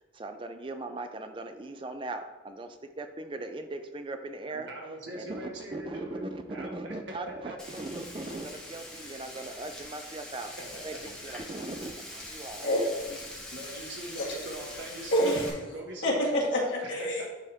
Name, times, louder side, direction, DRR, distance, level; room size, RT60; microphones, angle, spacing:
voice 1, 0.0-4.7 5.1-10.5 10.8-12.7, right 2 dB, 25° right, 7 dB, 0.4 m, -39 dB
voice 2, 4.5-6.2 6.5-6.9 7.3-7.5 10.7-11.3 13.5-16.4 17.0-17.3, right 1 dB, 75° right, -1 dB, 1.4 m, -42 dB
Frying (food), 7.6-15.5, left 1 dB, 5° left, 0.9 m, -43 dB
voice 3, 12.6-13.3 14.2-14.4 15.1-15.5 16.0-17.3, equal, 70° left, -4 dB, 1.8 m, -27 dB
10.0 x 3.5 x 2.8 m, 1.2 s
head